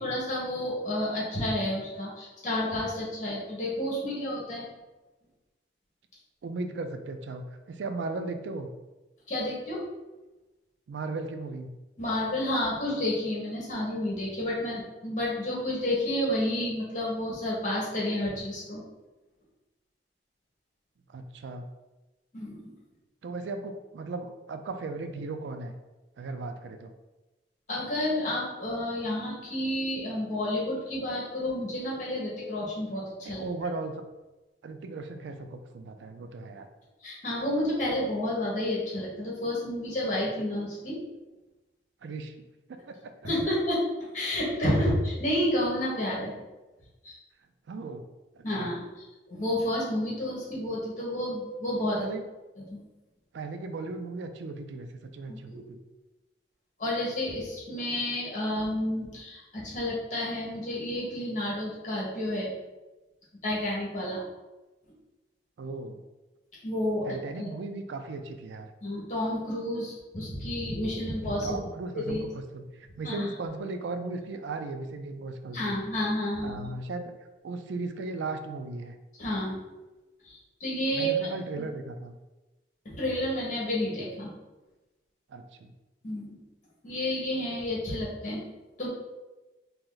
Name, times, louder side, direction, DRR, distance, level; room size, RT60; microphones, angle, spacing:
voice 1, 0.0-4.6 9.3-9.8 12.0-18.8 22.3-22.7 27.7-33.4 37.0-41.0 43.2-43.8 44.1-46.3 47.0-47.2 48.4-48.9 49.3-52.1 52.7-52.8 55.3-55.6 56.8-62.5 63.4-64.2 66.6-67.1 67.4-67.5 68.8-71.6 72.0-72.2 73.0-73.2 75.5-76.7 79.2-79.6 80.2-81.1 81.6-81.7 82.8-84.3 86.0-86.4 86.8-88.4 88.8-88.9, left 1 dB, 40° left, -5 dB, 1.3 m, -30 dB
voice 2, 6.4-8.7 10.9-11.7 21.1-21.7 23.2-25.7 26.2-26.9 33.2-33.9 34.6-36.7 42.0-42.3 42.7-43.1 47.7-48.0 48.4-48.7 51.9-52.2 53.3-54.9 55.1-55.8 65.6-66.0 67.0-68.7 71.4-75.8 76.4-77.1 77.4-79.0 80.9-82.1 85.3-85.7, right 3 dB, 75° right, 7 dB, 0.4 m, -36 dB
2.9 x 2.9 x 3.8 m, 1.1 s
head